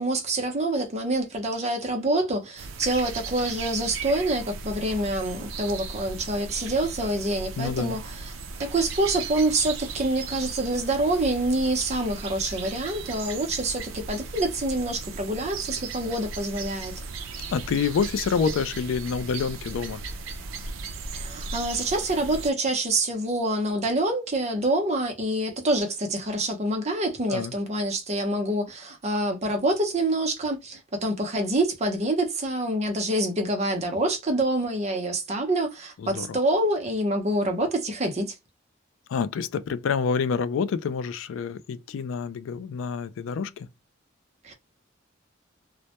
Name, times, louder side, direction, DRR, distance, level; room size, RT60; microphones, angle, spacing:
voice 1, 0.0-8.0 8.6-16.9 21.1-38.3 44.4-44.5, right 1 dB, 35° right, 0.6 m, -26 dB
sound 1, 2.6-22.5, right 4 dB, 85° right, 0.4 m, -37 dB
voice 2, 7.6-8.0 17.5-20.0 27.3-27.5 36.0-36.4 39.1-43.7, left 6 dB, 85° left, 0.3 m, -27 dB
2.1 x 2.1 x 2.7 m
head